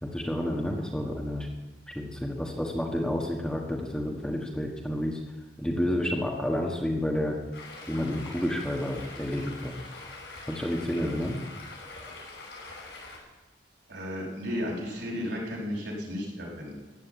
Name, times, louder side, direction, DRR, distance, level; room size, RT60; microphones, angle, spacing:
voice 1, 0.0-1.5 1.9-5.2 5.6-7.4 7.9-9.7 10.5-11.4, left 1 dB, 5° left, 0 dB, 1.3 m, -30 dB
Stream, 7.5-13.2, left 3 dB, 80° left, 6.1 m, -44 dB
voice 2, 13.9-16.7, left 1 dB, 70° right, -2 dB, 5.5 m, -34 dB
15.5 x 10.5 x 8.1 m, 1.2 s
head